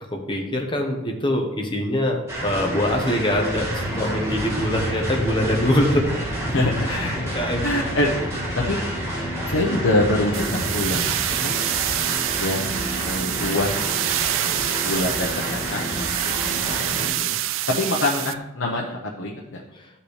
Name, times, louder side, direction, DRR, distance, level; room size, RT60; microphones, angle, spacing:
voice 1, 0.1-6.2 6.9-7.7 11.3-11.6 19.7-19.9, left 1 dB, 25° left, 2 dB, 1.1 m, -24 dB
sound 1, 2.3-17.1, equal, 15° right, 2.1 m, -30 dB
sound 2, 3.6-11.1, equal, ahead, 2.8 m, -32 dB
voice 2, 3.9-4.3 6.5-6.9 7.6-8.1 8.7-8.8 9.5-11.6 12.4-17.4 17.7-19.6, left 1 dB, 70° left, -2 dB, 1.0 m, -26 dB
sound 3, 10.3-18.3, right 13 dB, 65° right, 0.3 m, -26 dB
13.5 x 5.7 x 3.3 m, 1.0 s
head